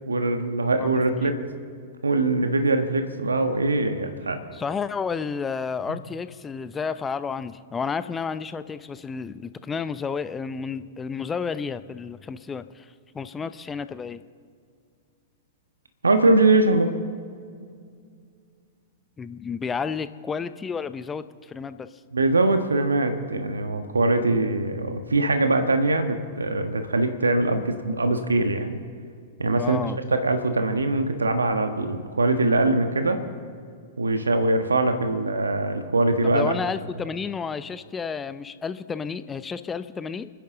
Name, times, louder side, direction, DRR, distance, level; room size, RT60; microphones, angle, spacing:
voice 1, 0.1-1.4 2.0-4.4 5.9-6.0 16.0-16.9 22.1-28.8 29.4-29.8 30.1-33.2 34.0-36.5, right 2 dB, 85° right, 7 dB, 1.3 m, -22 dB
voice 2, 4.5-14.2 19.2-21.9 29.6-30.0 36.2-40.3, left 5 dB, 15° left, 13 dB, 0.7 m, -31 dB
29.5 x 10.5 x 3.9 m, 2.2 s
figure-of-eight pair, 105°, 0 cm